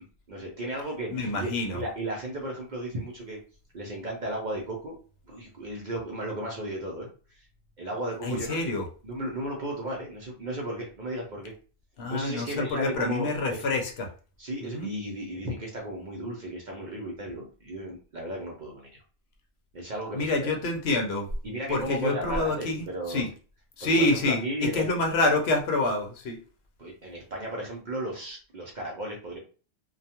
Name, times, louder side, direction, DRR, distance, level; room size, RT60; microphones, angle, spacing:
voice 1, 0.3-3.4 3.7-4.9 5.3-7.5 7.8-8.7 9.0-11.5 12.1-13.6 14.4-18.9 19.7-20.6 21.4-23.3 23.8-24.8 26.8-29.4, right 1 dB, 50° right, -2 dB, 0.6 m, -35 dB
voice 2, 1.1-1.8 8.2-8.9 12.0-14.1 14.6-14.9 20.1-21.3 21.7-23.3 23.8-26.4, left 2 dB, 65° left, 2 dB, 0.8 m, -27 dB
2.3 x 2.2 x 2.8 m, 0.37 s
omnidirectional pair, 1.2 m